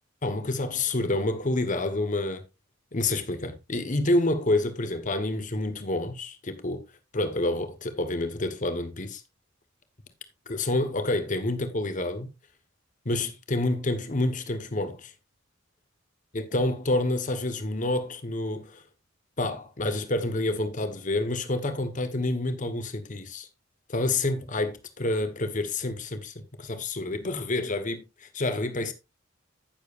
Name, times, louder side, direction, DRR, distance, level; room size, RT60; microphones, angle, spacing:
voice 1, 0.2-2.4 2.9-6.8 7.1-9.2 10.5-12.3 13.0-15.1 16.3-18.8 19.4-23.5 23.9-28.9, left 2 dB, 40° left, 1.1 m, -28 dB
10.0 x 9.0 x 2.5 m
head